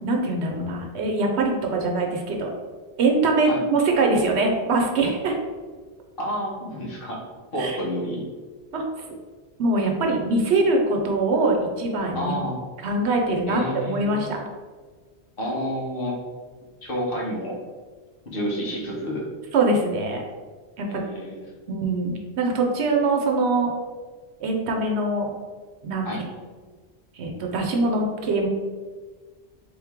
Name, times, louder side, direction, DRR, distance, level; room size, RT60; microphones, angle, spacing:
voice 1, 0.0-2.5 3.0-5.4 7.6-7.8 8.7-8.8 9.6-12.4 12.8-14.4 19.5-20.2 20.8-21.0 21.7-23.7 24.4-25.3 25.8-26.1 27.1-28.5, right 2 dB, 80° right, 2 dB, 1.0 m, -23 dB
voice 2, 6.2-7.2 7.5-8.2 12.1-12.6 13.5-14.2 15.4-16.2 16.8-17.6 18.3-19.3 20.9-21.4 26.0-26.2, equal, 55° left, -3 dB, 1.2 m, -29 dB
3.8 x 3.1 x 3.6 m, 1.4 s
omnidirectional pair, 1.1 m